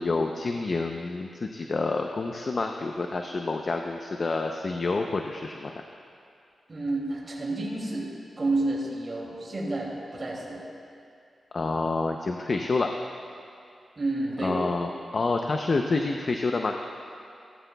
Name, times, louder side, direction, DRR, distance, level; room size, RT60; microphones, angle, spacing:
voice 1, 0.0-5.7 11.5-12.9 14.4-16.8, left 3 dB, 55° left, 3 dB, 0.6 m, -28 dB
voice 2, 6.7-10.8 14.0-14.6, right 2 dB, 40° right, -4 dB, 2.5 m, -30 dB
15.5 x 14.5 x 2.3 m, 2.4 s
cardioid pair, 55°, 0 cm